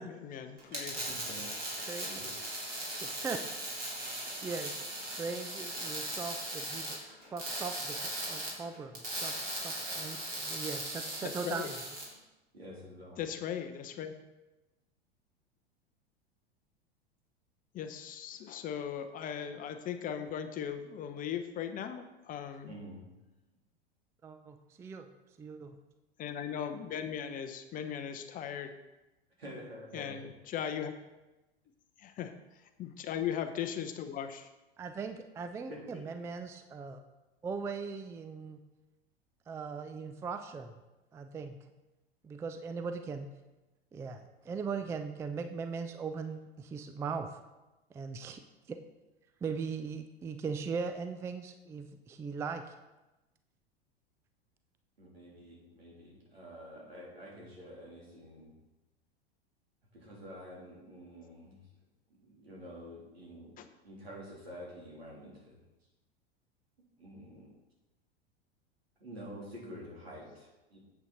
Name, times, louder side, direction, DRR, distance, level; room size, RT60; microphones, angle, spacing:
voice 1, 0.2-1.0 11.2-11.7 13.2-14.1 17.7-22.7 26.2-28.7 29.9-30.9 32.0-32.3 32.8-34.5 63.6-63.7, left 9 dB, 25° left, 8 dB, 0.7 m, -38 dB
sound 1, 0.6-12.1, right 1 dB, 30° right, 3.4 m, -38 dB
voice 2, 0.9-1.5 2.0-2.4 12.5-13.2 22.6-23.1 29.4-30.3 35.7-36.0 55.0-58.5 59.9-61.6 62.1-63.6 63.8-65.6 67.0-67.5 69.0-70.8, equal, 75° right, -3 dB, 3.4 m, -48 dB
voice 3, 3.0-3.4 4.4-4.8 5.1-7.0 7.3-11.8 24.2-25.1 25.4-25.8 34.8-37.0 37.4-38.6 39.5-40.7 41.1-41.6 42.2-43.3 43.9-47.3 47.9-48.4 48.7-48.8 49.4-52.7, right 5 dB, 10° right, 8 dB, 0.4 m, -39 dB
8.3 x 8.2 x 4.2 m, 1.1 s
figure-of-eight pair, 85°, 31 cm